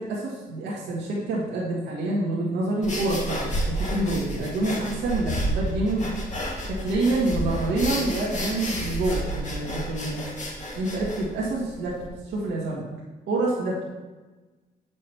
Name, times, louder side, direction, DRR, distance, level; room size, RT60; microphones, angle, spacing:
voice 1, 0.0-6.1 6.6-10.2 10.7-12.8 13.3-13.8, right 2 dB, 80° right, -5 dB, 1.9 m, -27 dB
sound 1, 2.8-12.1, equal, 45° left, 2.0 m, -31 dB
7.3 x 6.4 x 4.5 m, 1.2 s
supercardioid pair, 70°, 18 cm